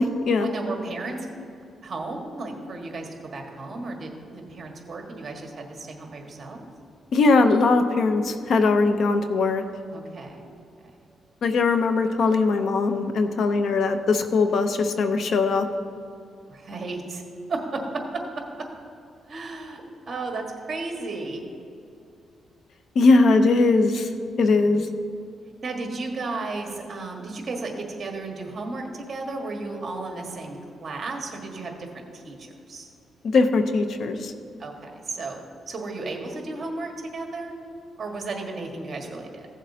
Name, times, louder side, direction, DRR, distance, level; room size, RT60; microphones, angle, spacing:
voice 1, 0.3-1.3 1.8-6.6 9.9-10.4 16.5-17.2 17.5-18.2 18.6-18.7 19.3-19.8 20.1-21.4 24.5-24.7 25.6-31.9 32.1-32.9 34.6-35.4 35.7-37.5 38.0-39.5, right 3 dB, 40° right, 1 dB, 1.6 m, -34 dB
voice 2, 7.1-9.6 11.4-15.7 23.0-24.1 24.4-24.9 33.2-34.3, left 3 dB, 65° left, 8 dB, 0.7 m, -20 dB
16.0 x 7.4 x 2.8 m, 2.5 s
cardioid pair, 105°, 0 cm